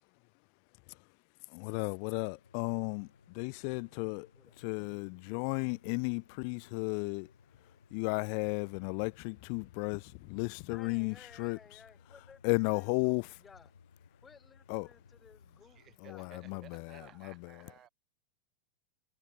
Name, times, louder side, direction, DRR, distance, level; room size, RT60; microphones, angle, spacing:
voice 1, 1.5-4.3 4.6-7.3 7.9-11.8 12.4-13.4 14.7-14.9 16.1-17.5, left 40 dB or more, 45° left, 0.4 m, -34 dB
sound 1, 2.2-16.0, left 6 dB, 75° left, 3.0 m, -62 dB
voice 2, 3.9-4.5 10.7-13.7 14.2-16.3, left 5 dB, 15° left, 3.2 m, -58 dB
voice 3, 15.8-17.9, right 11 dB, 30° right, 6.3 m, -57 dB
figure-of-eight pair, 90°, 0 cm